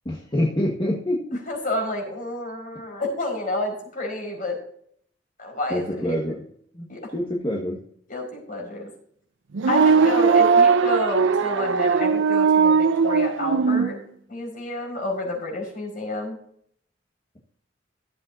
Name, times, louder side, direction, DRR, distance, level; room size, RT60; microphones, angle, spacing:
voice 1, 0.0-1.4 5.7-6.4 6.7-6.9 7.1-7.8, left 1 dB, 25° left, -2 dB, 1.5 m, -26 dB
voice 2, 1.5-4.6 5.4-6.2 6.9-7.0 8.1-8.9 9.7-14.0 14.3-16.4, left 2 dB, 45° left, 0 dB, 5.1 m, -30 dB
sound 1, 9.5-13.9, right 5 dB, 80° right, 0.6 m, -19 dB
16.0 x 7.6 x 2.7 m, 0.64 s
head